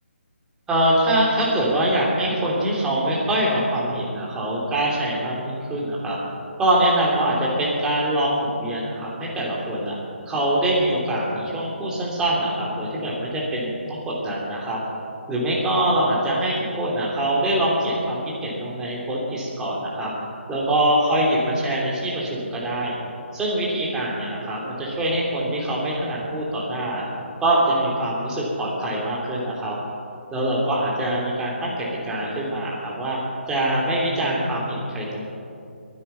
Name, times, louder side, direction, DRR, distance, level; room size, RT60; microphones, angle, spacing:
voice 1, 0.7-6.2 6.6-10.0 10.3-14.8 15.3-20.1 20.5-22.9 23.3-27.1 27.4-29.8 30.3-33.2 33.5-35.2, right 1 dB, 10° right, -5 dB, 3.1 m, -24 dB
22.0 x 9.8 x 5.8 m, 2.5 s
figure-of-eight pair, 150°, 7 cm